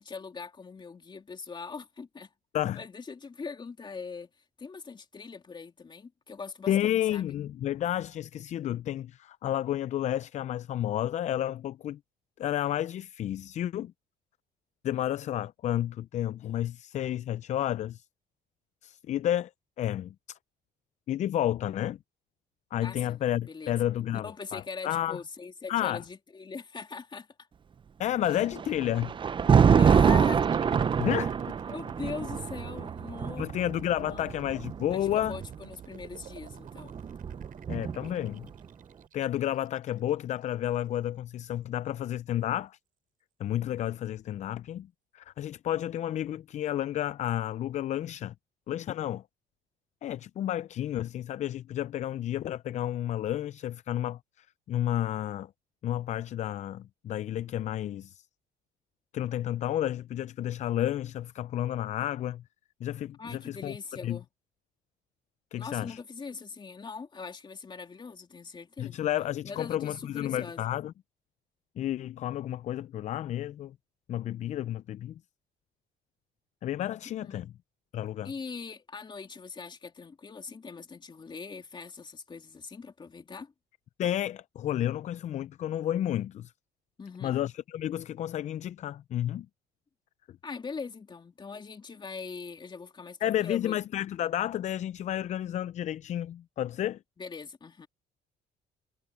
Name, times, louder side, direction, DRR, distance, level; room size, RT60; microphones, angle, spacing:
voice 1, 0.0-2.3 2.7-4.3 4.6-7.3 22.8-23.7 24.1-27.3 29.7-30.4 31.7-33.5 34.1-34.3 34.9-37.0 63.2-64.3 65.5-69.0 69.4-70.6 77.0-77.4 78.2-83.5 87.0-87.4 90.4-93.8 97.2-97.9, left 5 dB, 25° left, 3.0 m, -41 dB
voice 2, 6.7-12.0 12.4-13.9 14.8-18.0 18.8-19.5 19.8-20.4 21.1-22.0 22.7-25.2 25.7-26.0 28.0-29.1 31.0-31.3 33.4-35.4 37.7-38.5 39.1-42.8 43.4-44.9 45.1-48.3 48.7-49.2 50.0-55.5 55.8-58.3 59.1-62.4 62.8-63.8 64.0-64.2 65.5-66.0 68.8-70.9 71.8-73.8 74.1-75.2 76.6-77.5 77.9-78.3 84.0-86.5 87.2-89.5 90.3-90.4 93.2-97.0, left 12 dB, 45° left, 0.4 m, -31 dB
Thunder, 28.3-35.5 36.5-38.3, right 7 dB, 30° right, 0.6 m, -25 dB
sound 1, 30.3-40.3, right 9 dB, 55° right, 4.7 m, -48 dB
cardioid pair, 110°, 17 cm